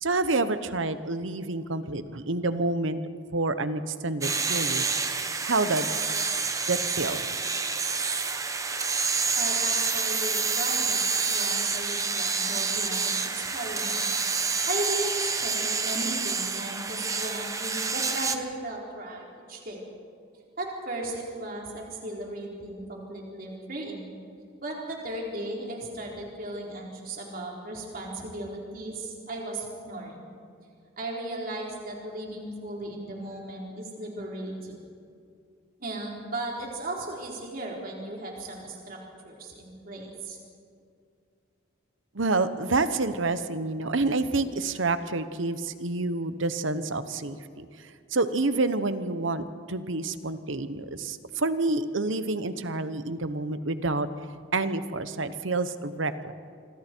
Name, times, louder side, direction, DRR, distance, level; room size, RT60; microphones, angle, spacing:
voice 1, 0.0-3.0 3.3-4.9 5.4-5.9 6.7-7.2 42.1-47.6 48.1-54.1 54.5-56.3, right 3 dB, 75° right, 11 dB, 1.1 m, -28 dB
sound 1, 4.2-18.4, right 4 dB, 15° right, 0.9 m, -28 dB
voice 2, 9.4-14.1 14.7-19.8 20.6-24.1 24.6-30.3 31.0-34.9 35.8-39.0 39.2-40.4, right 1 dB, 45° right, -2 dB, 4.0 m, -36 dB
26.5 x 24.5 x 4.6 m, 2.3 s
head